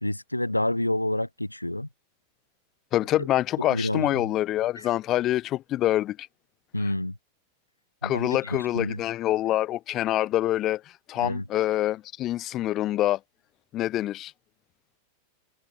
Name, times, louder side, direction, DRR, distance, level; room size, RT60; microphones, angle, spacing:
voice 1, 0.0-1.9 3.7-4.2 4.8-4.9 6.7-7.1 8.0-9.0 11.2-11.4, left 1 dB, 85° left, 1.8 m, -28 dB
voice 2, 2.9-6.3 8.0-10.8 11.1-13.2 13.7-14.3, left 14 dB, 35° left, 1.6 m, -26 dB
figure-of-eight pair, 90°, 0 cm